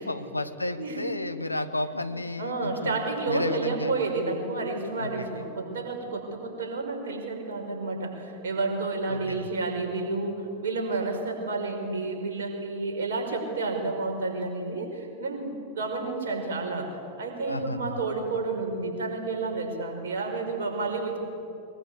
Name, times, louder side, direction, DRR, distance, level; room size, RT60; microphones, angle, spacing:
voice 1, 0.0-3.0 3.3-3.9 5.0-5.1 9.1-9.5 17.5-18.0, left 2 dB, 85° left, 11 dB, 1.2 m, -32 dB
voice 2, 0.8-1.1 2.0-16.9 17.2-21.2, right 3 dB, 60° right, 2 dB, 5.5 m, -30 dB
23.0 x 22.5 x 8.3 m, 2.6 s
figure-of-eight pair, 90°, 0 cm